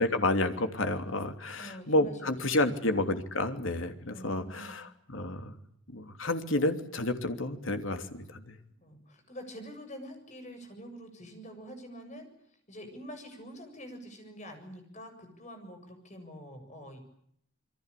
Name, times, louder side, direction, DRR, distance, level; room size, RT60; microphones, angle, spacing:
voice 1, 0.0-5.5 5.9-8.5, left 2 dB, 80° left, 7 dB, 3.1 m, -30 dB
voice 2, 1.6-3.0 4.1-4.8 8.8-17.0, equal, 35° left, 6 dB, 7.4 m, -46 dB
28.0 x 23.5 x 8.4 m, 0.70 s
head